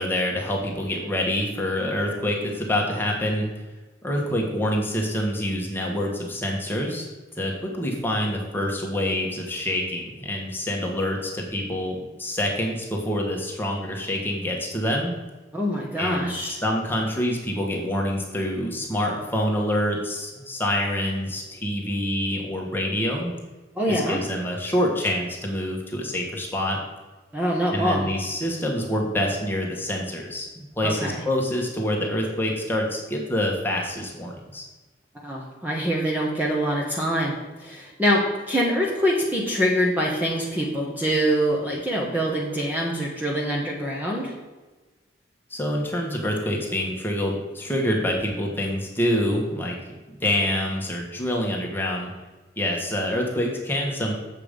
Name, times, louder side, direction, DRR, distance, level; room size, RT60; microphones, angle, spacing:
voice 1, 0.0-3.5 4.0-7.1 7.4-15.1 16.0-23.3 23.9-26.8 27.7-34.7 45.5-49.8 50.2-52.1 52.6-54.1, left 1 dB, 10° left, -1 dB, 1.5 m, -26 dB
voice 2, 15.5-16.6 23.7-24.2 27.3-28.1 30.8-31.2 35.2-44.3, equal, 10° right, -3 dB, 1.2 m, -24 dB
8.2 x 6.8 x 5.2 m, 1.2 s
head